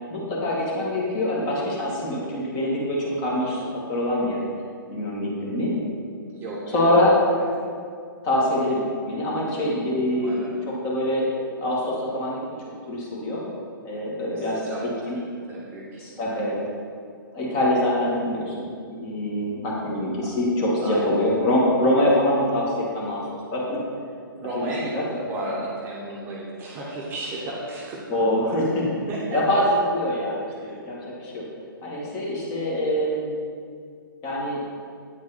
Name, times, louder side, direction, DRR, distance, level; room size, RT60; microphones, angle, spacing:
voice 1, 0.1-4.4 4.9-5.7 6.7-7.2 8.2-10.4 10.7-11.3 11.6-12.4 12.9-13.4 13.8-14.6 16.0-16.6 17.3-23.2 23.5-23.8 24.6-25.0 28.1-28.9 29.3-31.4 31.8-33.3 34.2-34.6, left 1 dB, 30° left, -4 dB, 1.9 m, -24 dB
voice 2, 6.3-7.0 7.6-7.7 10.1-10.6 14.3-16.5 20.2-20.3 20.8-21.3 24.3-28.2 29.1-29.4 30.6-30.8, right 1 dB, 20° right, -5 dB, 1.0 m, -34 dB
8.7 x 4.6 x 4.3 m, 2.3 s
hypercardioid pair, 135°, 12 cm